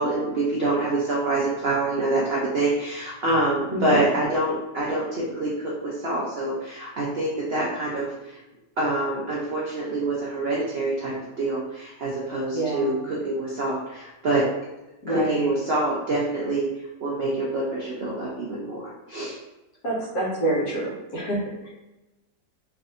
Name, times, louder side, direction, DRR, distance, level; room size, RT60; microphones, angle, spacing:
voice 1, 0.0-8.4 8.8-14.5 15.1-16.7 17.0-19.4, right 2 dB, 80° right, -5 dB, 0.5 m, -26 dB
voice 2, 12.5-13.0 15.0-15.5 19.8-21.7, right 1 dB, 65° left, -5 dB, 1.3 m, -27 dB
3.5 x 2.6 x 2.4 m, 1.0 s
omnidirectional pair, 1.8 m